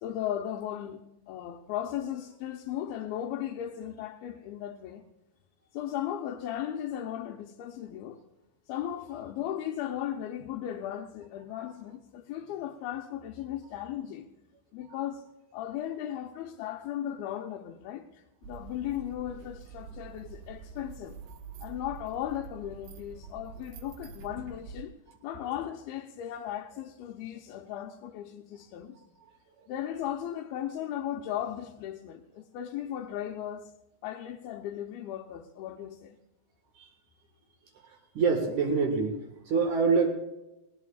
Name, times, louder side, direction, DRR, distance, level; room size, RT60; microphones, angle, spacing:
voice 1, 0.0-5.0 5.7-8.2 8.7-14.3 14.7-15.3 15.5-21.2 21.6-24.9 25.2-29.0 29.7-33.7 34.0-36.2, left 11 dB, 85° left, 2.7 m, -36 dB
sound 1, 18.4-24.8, right 6 dB, 80° right, 3.0 m, -46 dB
voice 2, 38.1-40.1, right 5 dB, 60° right, 2.9 m, -25 dB
20.0 x 18.5 x 2.4 m
omnidirectional pair, 4.3 m